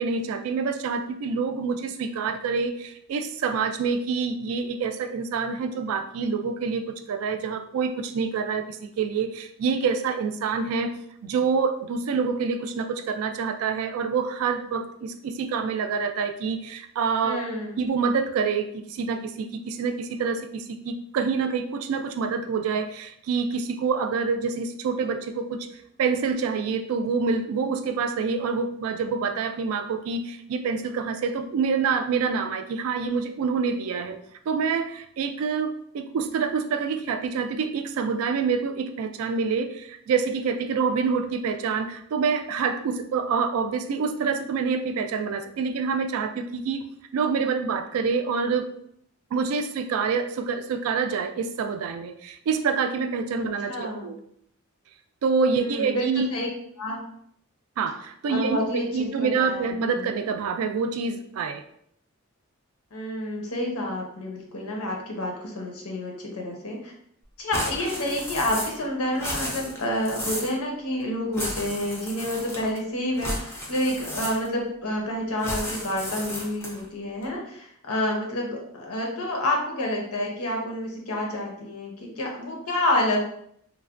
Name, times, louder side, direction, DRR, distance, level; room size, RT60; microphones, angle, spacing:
voice 1, 0.0-10.9 11.2-17.4 17.8-25.7 26.0-34.2 34.5-46.8 47.1-48.7 49.3-54.2 55.2-56.3 57.8-61.6, right 5 dB, 80° right, 8 dB, 0.3 m, -27 dB
voice 2, 17.2-17.8 53.7-54.1 55.6-56.5 56.8-57.0 58.3-58.9 59.1-60.1 62.9-66.9 67.4-83.3, left 1 dB, 85° left, -1 dB, 0.8 m, -29 dB
sound 1, 67.5-68.9 69.1-70.6 71.3-72.8 73.2-74.7 75.4-76.9, left 1 dB, 10° left, 0.4 m, -33 dB
3.2 x 2.1 x 2.4 m, 0.69 s
head